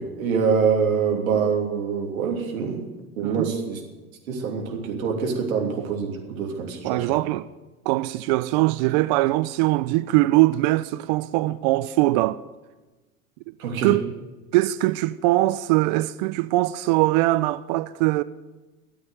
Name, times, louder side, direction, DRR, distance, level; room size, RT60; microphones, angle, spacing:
voice 1, 0.0-2.9 3.2-3.8 4.3-7.1 13.6-14.0, right 6 dB, 65° right, 3.2 m, -25 dB
voice 2, 6.8-7.5 7.9-12.4 13.8-14.0 14.5-18.2, right 18 dB, 35° right, 0.4 m, -21 dB
13.5 x 8.6 x 9.3 m
figure-of-eight pair, 85°, 45 cm